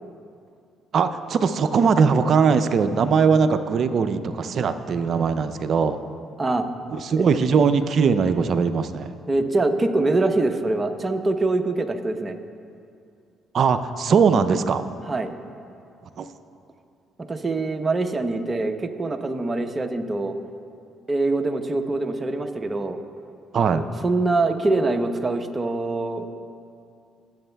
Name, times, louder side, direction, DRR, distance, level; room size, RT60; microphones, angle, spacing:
voice 1, 0.9-6.0 6.9-9.1 13.5-14.8 16.2-16.3 23.5-23.8, right 5 dB, 55° right, 11 dB, 0.5 m, -20 dB
voice 2, 9.3-12.4 15.1-15.3 17.3-20.4 21.1-23.0 23.5-26.3, right 2 dB, 25° right, 6 dB, 0.8 m, -24 dB
19.5 x 7.9 x 2.3 m, 2.4 s
supercardioid pair, 70°, 0 cm